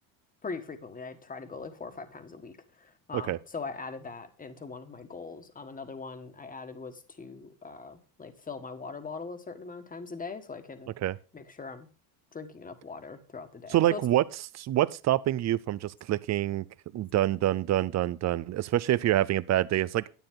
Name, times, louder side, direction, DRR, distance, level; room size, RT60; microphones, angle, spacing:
voice 1, 0.4-10.9 11.3-11.9 12.3-14.0, left 4 dB, 20° left, 1.5 m, -41 dB
voice 2, 13.7-14.2 14.5-16.6 16.9-20.1, right 13 dB, 40° right, 0.6 m, -26 dB
10.5 x 8.7 x 3.7 m
cardioid pair, 110°, 42 cm